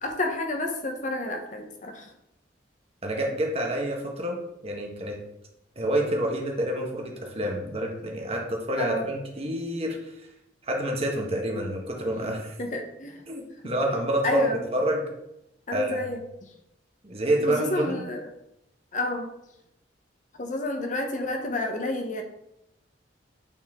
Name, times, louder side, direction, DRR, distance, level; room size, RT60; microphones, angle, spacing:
voice 1, 0.0-2.1 8.8-9.1 12.6-13.2 13.6-13.7 14.2-14.6 15.7-16.5 17.5-18.3 18.9-19.3 20.3-22.2, left 2 dB, 45° left, 4 dB, 1.0 m, -30 dB
voice 2, 3.0-4.4 4.6-5.2 5.7-10.3 10.6-12.5 13.3-15.0 15.7-16.0 17.0-18.1, right 1 dB, 35° right, 0 dB, 1.3 m, -28 dB
8.4 x 4.2 x 3.7 m, 0.85 s
head